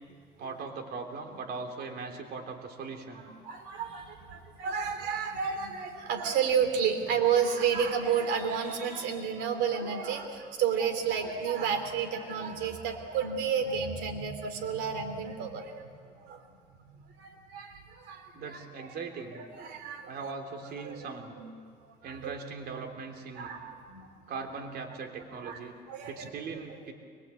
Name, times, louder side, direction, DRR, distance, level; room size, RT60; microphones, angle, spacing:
voice 1, 0.4-3.3 18.3-19.4 20.1-21.4 22.0-23.5 24.3-25.8 26.1-26.9, right 4 dB, 70° right, 3 dB, 3.4 m, -40 dB
voice 2, 3.4-15.9 16.2-16.4 17.2-18.6 19.4-20.3 20.6-21.0 21.8-22.3 23.3-24.1 25.3-25.6 25.9-26.3 26.7-26.9, right 7 dB, 85° right, 5 dB, 3.1 m, -31 dB
23.0 x 22.5 x 8.4 m, 2.2 s
cardioid pair, 110°, 17 cm